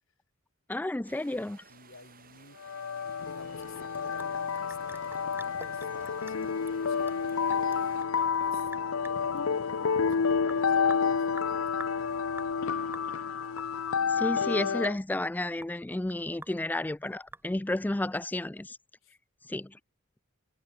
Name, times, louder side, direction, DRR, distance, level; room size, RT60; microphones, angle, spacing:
voice 1, 0.7-1.6 14.1-18.8 19.5-19.7, left 1 dB, 10° left, 0.4 m, -32 dB
sound 1, 1.0-8.0, right 6 dB, 45° right, 6.7 m, -57 dB
voice 2, 1.7-2.6 3.2-7.3 7.7-7.9 8.4-12.5 19.0-19.1, left 3 dB, 70° left, 3.2 m, -52 dB
sound 2, 2.6-15.0, left 6 dB, 85° left, 0.6 m, -29 dB
Sink (filling or washing) / Drip, 3.4-17.9, right 2 dB, 10° right, 7.5 m, -50 dB
head